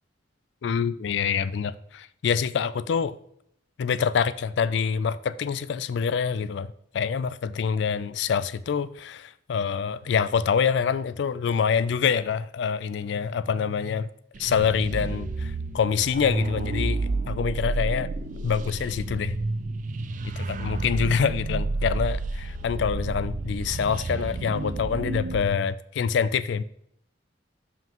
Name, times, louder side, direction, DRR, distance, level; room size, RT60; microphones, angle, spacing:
voice 1, 0.6-3.2 3.8-14.1 14.4-17.0 17.3-18.1 18.4-19.4 20.2-26.6, left 6 dB, 65° left, 0.3 m, -26 dB
sound 1, 14.3-25.4, right 3 dB, 40° right, 0.4 m, -30 dB
7.1 x 5.7 x 3.0 m
head